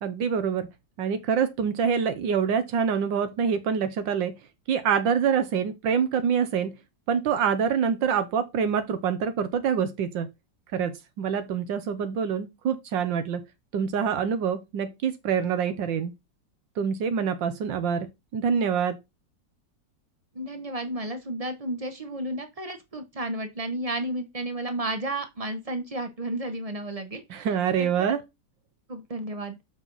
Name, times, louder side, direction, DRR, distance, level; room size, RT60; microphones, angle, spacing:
voice 1, 0.0-0.7 1.0-4.3 4.7-6.7 7.1-10.3 10.7-13.4 13.7-16.1 16.8-19.0 27.3-28.2, right 7 dB, 80° right, 1.6 m, -26 dB
voice 2, 20.3-27.5 27.8-27.9 28.9-29.6, right 1 dB, 35° right, 0.6 m, -32 dB
7.0 x 5.0 x 4.0 m
omnidirectional pair, 2.0 m